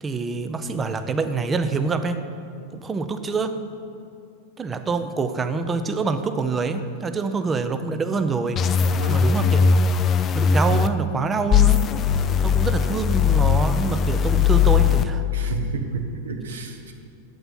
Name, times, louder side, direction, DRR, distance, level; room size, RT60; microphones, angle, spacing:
voice 1, 0.0-2.2 2.7-3.6 4.6-8.6 9.1-9.7 10.3-11.8 12.4-15.5, right 4 dB, 20° right, 9 dB, 0.7 m, -26 dB
sound 1, 8.6-10.9 11.5-15.0, left 7 dB, 25° left, 0.4 m, -19 dB
voice 2, 15.3-16.9, right 5 dB, 65° right, 3 dB, 1.3 m, -31 dB
8.9 x 8.1 x 7.8 m, 2.5 s
figure-of-eight pair, 90°, 0 cm